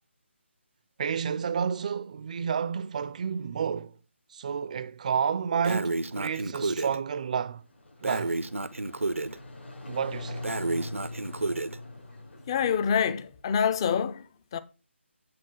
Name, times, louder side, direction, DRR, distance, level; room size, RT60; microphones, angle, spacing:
voice 1, 1.0-4.0 4.3-7.6 8.0-8.4 9.9-10.5, right 7 dB, 35° right, 0.4 m, -30 dB
Breathing, 5.6-7.0 8.0-9.3 10.4-11.8, right 2 dB, 90° right, 0.6 m, -31 dB
sound 1, 7.5-13.4, left 2 dB, 70° left, 5.3 m, -42 dB
voice 2, 12.5-14.2 14.5-14.6, left 7 dB, 25° left, 0.4 m, -26 dB
8.6 x 3.7 x 6.1 m
figure-of-eight pair, 155°, 7 cm